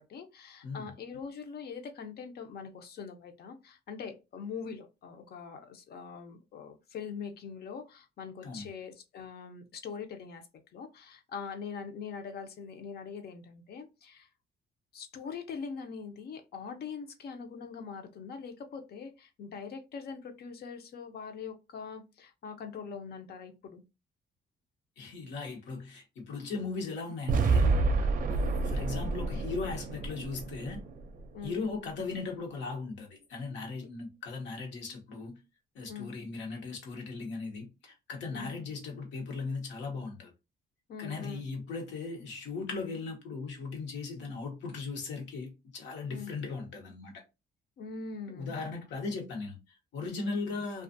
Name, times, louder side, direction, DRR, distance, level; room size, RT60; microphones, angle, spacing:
voice 1, 0.0-10.4 10.7-14.3 14.9-23.8 31.3-31.6 33.8-33.9 35.9-36.1 38.3-38.5 40.9-41.4 46.1-46.3 47.8-48.6 50.2-50.4, left 6 dB, 60° left, 0.6 m, -42 dB
voice 2, 25.0-30.8 31.4-35.4 35.7-40.3 41.0-47.2 48.3-50.8, left 4 dB, 90° left, 1.0 m, -38 dB
sound 1, 27.3-31.4, right 3 dB, 50° right, 0.5 m, -29 dB
2.5 x 2.3 x 2.5 m
cardioid pair, 100°, 18 cm